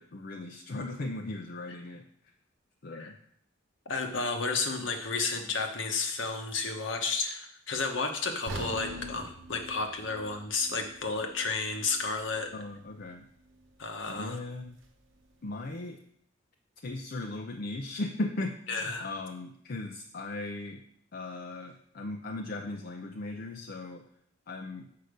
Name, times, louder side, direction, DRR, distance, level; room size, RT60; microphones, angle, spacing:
voice 1, 0.0-2.0 2.8-3.2 12.5-13.3 14.1-14.8 15.4-16.0 16.8-20.8 21.1-24.0 24.5-24.9, left 2 dB, 50° left, 3 dB, 0.5 m, -37 dB
voice 2, 3.9-12.5 13.8-14.4 18.7-19.1, left 4 dB, 75° left, 4 dB, 1.1 m, -32 dB
sound 1, 8.5-12.5 12.9-13.0 13.6-13.7, right 1 dB, 75° right, 0.9 m, -43 dB
6.5 x 5.7 x 5.1 m, 0.69 s
head